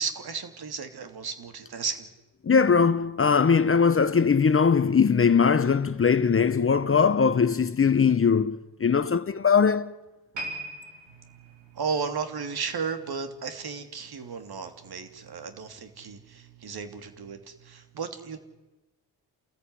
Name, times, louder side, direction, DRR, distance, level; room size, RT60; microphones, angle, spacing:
voice 1, 0.0-2.1 11.1-18.4, right 5 dB, 60° right, 3.0 m, -34 dB
voice 2, 2.4-9.9, left 6 dB, 30° left, 0.9 m, -21 dB
sound 1, 10.3-13.6 13.9-14.2 14.9-15.0, right 2 dB, 80° right, 7.1 m, -41 dB
29.5 x 14.0 x 9.8 m
cardioid pair, 75°, 43 cm